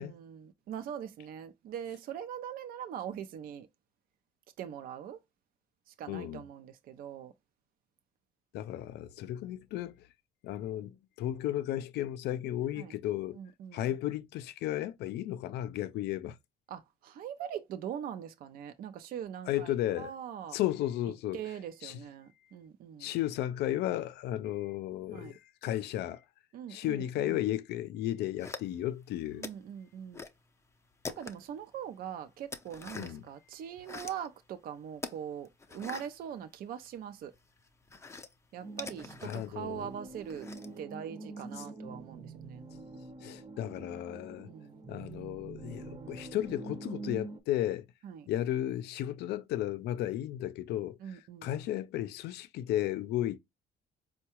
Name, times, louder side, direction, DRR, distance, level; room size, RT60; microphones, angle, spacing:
voice 1, 0.0-3.7 4.6-5.2 5.9-7.3 12.8-12.9 13.3-13.8 16.7-20.6 21.3-23.1 25.1-25.4 26.5-27.4 29.4-30.2 31.2-37.3 38.5-40.5 40.8-42.6 44.4-44.8 48.0-48.3 51.0-51.7, right 9 dB, 60° right, 0.5 m, -42 dB
voice 2, 6.1-6.4 8.5-10.1 10.4-13.4 13.7-16.4 19.5-20.1 20.5-21.4 21.8-22.0 23.0-26.2 26.7-29.4 32.9-33.3 39.2-39.9 41.6-41.7 43.2-44.5 44.9-47.9 48.3-53.4, left 13 dB, 75° left, 0.5 m, -34 dB
sound 1, 28.4-29.0 29.4-30.4 30.7-31.6 32.0-33.3 33.7-34.3 35.0-37.0 37.3-40.8, left 3 dB, 15° left, 0.5 m, -44 dB
sound 2, 38.6-47.4, right 3 dB, 20° right, 0.7 m, -45 dB
4.5 x 2.2 x 2.9 m
cardioid pair, 110°, 17 cm